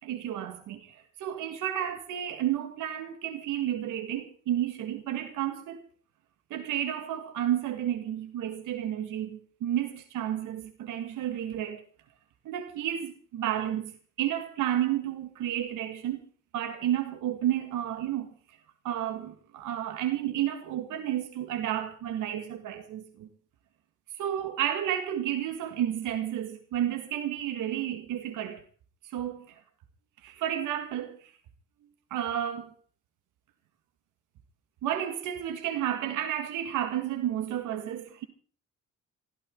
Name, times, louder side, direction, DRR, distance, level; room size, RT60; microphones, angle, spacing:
voice 1, 0.0-5.8 6.5-11.8 12.5-13.9 14.2-16.2 16.5-18.3 18.8-23.3 24.2-28.6 29.0-29.6 30.2-31.3 32.1-32.7 34.8-38.3, right 11 dB, 90° right, 1.9 m, -31 dB
24.0 x 15.0 x 3.9 m
cardioid pair, 90°, 30 cm